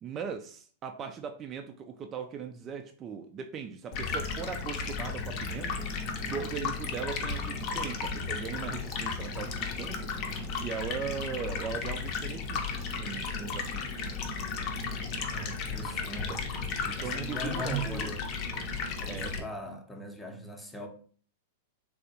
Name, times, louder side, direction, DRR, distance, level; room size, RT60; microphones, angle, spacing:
voice 1, 0.0-5.9 6.3-10.1 10.6-13.9 15.8-16.4 16.8-18.1 19.1-19.5, right 7 dB, 30° right, 0.3 m, -39 dB
Stream, 3.9-19.4, left 4 dB, 45° left, 0.6 m, -34 dB
voice 2, 15.3-16.6 17.0-18.2 19.0-20.9, right 2 dB, 5° left, 0.7 m, -39 dB
3.5 x 2.4 x 2.7 m
hypercardioid pair, 105°, 0 cm